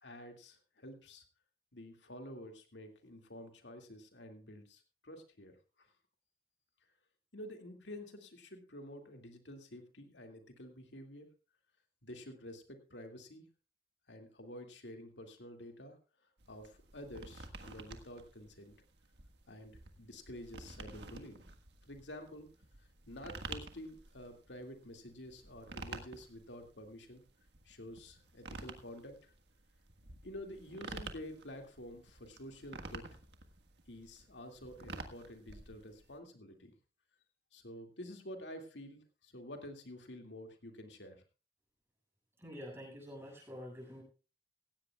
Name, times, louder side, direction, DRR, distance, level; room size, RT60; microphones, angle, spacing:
voice 1, 0.0-1.2 1.7-5.9 7.3-11.3 12.0-13.4 14.1-16.0 16.5-18.7 19.5-21.4 21.8-22.5 23.1-27.2 27.7-29.3 30.2-33.2 33.9-36.7 37.5-41.2, left 1 dB, 80° left, 4 dB, 2.3 m, -49 dB
sound 1, 16.4-36.2, right 3 dB, 70° right, 1.5 m, -50 dB
voice 2, 42.4-44.0, equal, 15° right, -1 dB, 7.5 m, -47 dB
16.5 x 16.0 x 2.4 m, 0.33 s
head